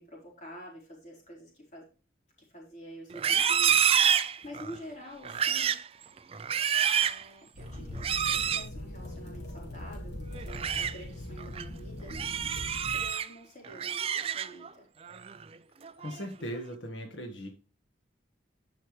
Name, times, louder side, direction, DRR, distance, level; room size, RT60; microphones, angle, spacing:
voice 1, 0.0-1.9 2.4-4.1 4.4-5.8 6.8-12.6 12.9-14.9, equal, 40° left, -2 dB, 4.1 m, -48 dB
Livestock farm animals working animals, 3.1-4.8 5.2-5.9 6.3-7.2 8.0-8.7 10.3-10.9 11.4-11.6 12.1-13.3 13.6-14.7 15.1-15.4 15.8-16.3, right 8 dB, 30° right, 0.4 m, -28 dB
sound 1, 7.5-13.1, left 1 dB, 60° left, 2.8 m, -41 dB
voice 2, 16.0-17.5, equal, 85° left, 3 dB, 1.6 m, -38 dB
12.0 x 5.7 x 3.2 m, 0.37 s
head